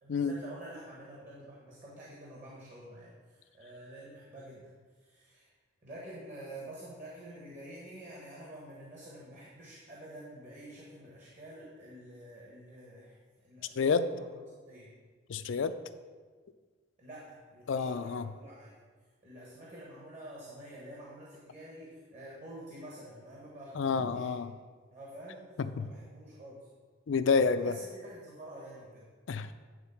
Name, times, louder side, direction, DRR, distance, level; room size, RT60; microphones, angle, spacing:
voice 1, 0.0-5.5 5.8-13.2 13.4-14.9 17.0-18.7 19.2-24.4 24.9-25.5 25.8-26.7 27.5-29.1, right 1 dB, 40° right, -5 dB, 1.4 m, -48 dB
voice 2, 13.8-14.1 15.3-15.8 17.7-18.2 23.8-24.5 25.8-25.9 27.1-27.7 29.3-29.5, left 5 dB, 70° left, 12 dB, 0.4 m, -28 dB
9.4 x 3.9 x 5.7 m, 1.5 s
head